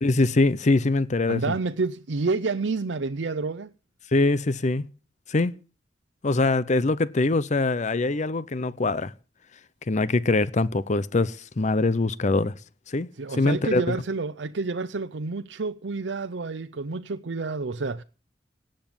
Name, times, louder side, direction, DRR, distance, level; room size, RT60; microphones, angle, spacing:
voice 1, 0.0-1.5 4.1-4.8 5.3-5.5 6.2-9.1 9.9-12.5 12.9-13.1 13.4-14.0, left 2 dB, 40° left, 0.6 m, -23 dB
voice 2, 1.3-3.7 13.2-18.0, right 3 dB, 80° right, 0.7 m, -29 dB
18.0 x 7.8 x 8.8 m
head